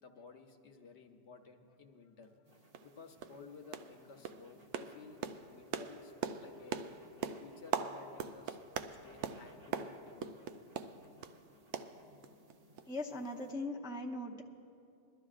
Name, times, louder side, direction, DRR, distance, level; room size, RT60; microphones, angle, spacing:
voice 1, 0.0-2.3 2.6-6.1 6.4-6.8 7.4-10.3, left 4 dB, 70° left, 6 dB, 1.0 m, -55 dB
sound 1, 2.2-2.3 2.7-2.9 3.2-3.4 3.7-4.0 4.2-11.4 11.7-12.5 12.8-12.9 13.2-13.3, right 7 dB, 75° right, 0.9 m, -41 dB
sound 2, 2.4-13.5, right 1 dB, 35° right, 0.9 m, -64 dB
voice 2, 12.9-14.4, left 1 dB, 5° right, -1 dB, 0.5 m, -40 dB
22.0 x 12.5 x 2.5 m, 2.5 s
omnidirectional pair, 1.2 m